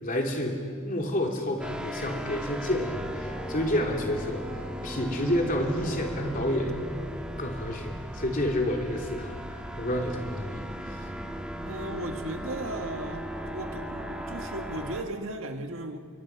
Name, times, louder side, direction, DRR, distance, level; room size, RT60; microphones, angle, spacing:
voice 1, 0.0-0.6 0.8-6.7 7.4-11.0, left 1 dB, 40° left, 1 dB, 3.1 m, -29 dB
sound 1, 1.6-15.0, equal, 5° right, 1.6 m, -37 dB
voice 2, 11.6-16.0, right 1 dB, 75° right, 5 dB, 1.8 m, -36 dB
25.0 x 23.5 x 6.1 m, 2.2 s
head